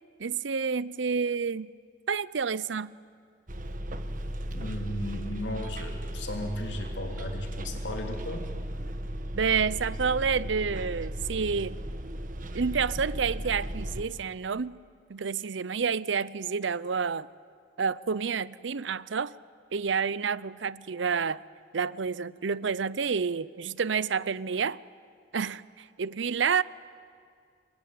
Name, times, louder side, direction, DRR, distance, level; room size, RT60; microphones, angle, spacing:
voice 1, 0.2-1.7 2.1-2.9 9.3-11.8 12.5-14.7 15.1-17.3 17.8-19.3 19.7-21.4 21.7-24.8 25.3-26.6, right 6 dB, 80° right, 19 dB, 0.6 m, -29 dB
Bus, 3.5-14.0, equal, 45° right, 1.4 m, -36 dB
voice 2, 4.5-8.4, left 1 dB, 75° left, 3 dB, 3.4 m, -36 dB
28.5 x 22.5 x 9.4 m, 2.3 s
head